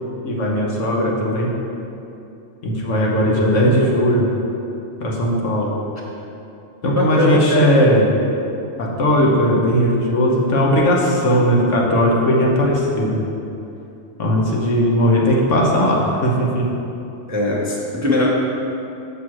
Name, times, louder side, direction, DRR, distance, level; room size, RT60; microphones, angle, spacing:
voice 1, 0.2-1.5 2.6-4.3 5.0-5.7 6.8-8.1 8.8-13.2 14.2-16.6, equal, 85° left, -2 dB, 1.5 m, -17 dB
voice 2, 6.8-7.6 17.3-18.3, left 2 dB, 15° right, -4 dB, 0.7 m, -20 dB
7.4 x 5.9 x 4.7 m, 2.8 s
omnidirectional pair, 1.2 m